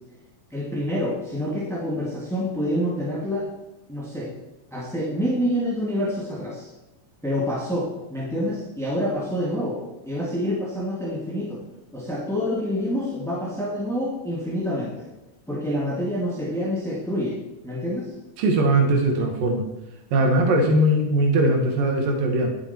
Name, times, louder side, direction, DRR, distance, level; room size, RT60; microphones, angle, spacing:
voice 1, 0.5-3.5 3.9-4.3 4.7-6.7 7.2-11.6 11.9-15.1 15.5-17.4 17.6-18.1, equal, ahead, -5 dB, 1.4 m, -27 dB
voice 2, 18.4-19.6 20.1-22.5, right 1 dB, 90° right, 2 dB, 3.2 m, -20 dB
11.5 x 9.8 x 4.4 m, 0.99 s
omnidirectional pair, 3.9 m